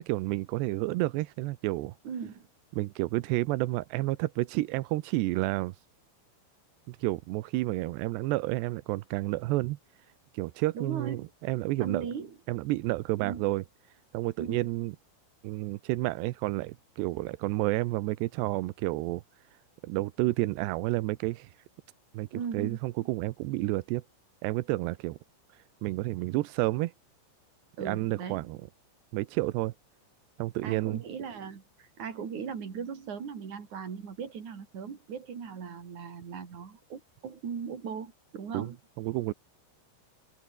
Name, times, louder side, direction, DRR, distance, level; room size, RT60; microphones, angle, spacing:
voice 1, 0.0-2.0 2.7-5.7 6.9-9.8 10.3-12.1 12.5-13.6 14.1-14.9 15.4-19.2 19.8-21.5 22.1-22.3 22.5-24.0 24.4-25.2 25.8-26.9 27.8-28.6 29.1-29.7 30.4-31.0 38.5-38.7 39.0-39.3, right 19 dB, 85° right, 2.4 m, -30 dB
voice 2, 2.0-2.5 10.7-11.3 11.8-12.4 13.2-13.5 14.4-14.7 22.3-23.1 27.8-28.5 30.6-38.8, right 6 dB, 40° right, 4.5 m, -38 dB
omnidirectional pair, 5.9 m